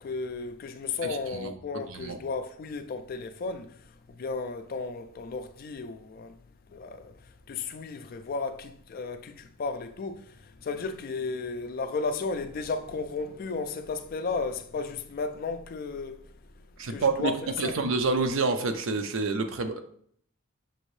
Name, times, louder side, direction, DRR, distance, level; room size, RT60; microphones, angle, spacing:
voice 1, 0.0-3.7 4.2-6.3 6.7-7.1 7.5-16.2 16.9-17.7, left 4 dB, 45° left, 0.3 m, -34 dB
voice 2, 1.0-1.5 1.9-2.2 16.8-17.3 17.6-19.8, right 3 dB, 70° right, 0.5 m, -28 dB
5.9 x 2.6 x 3.1 m
head